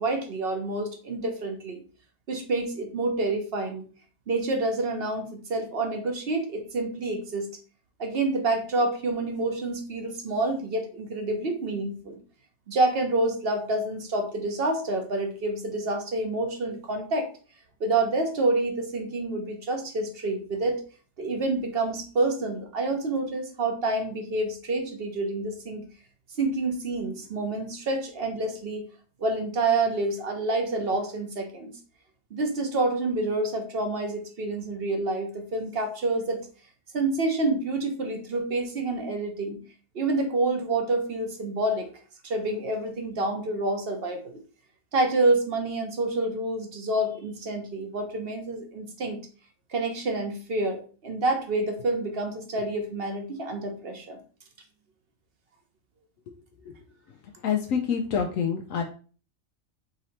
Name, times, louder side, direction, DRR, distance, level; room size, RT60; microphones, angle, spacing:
voice 1, 0.0-1.8 2.3-3.9 4.3-7.5 8.0-12.2 12.7-17.3 17.8-20.8 21.2-25.9 26.4-28.8 29.2-31.7 32.3-36.5 36.9-39.6 39.9-41.9 42.2-44.4 44.9-49.2 49.7-54.2, right 2 dB, 50° right, 4 dB, 1.0 m, -28 dB
voice 2, 57.4-58.8, left 7 dB, 85° left, 2 dB, 1.0 m, -27 dB
3.8 x 3.1 x 4.2 m, 0.38 s
omnidirectional pair, 1.3 m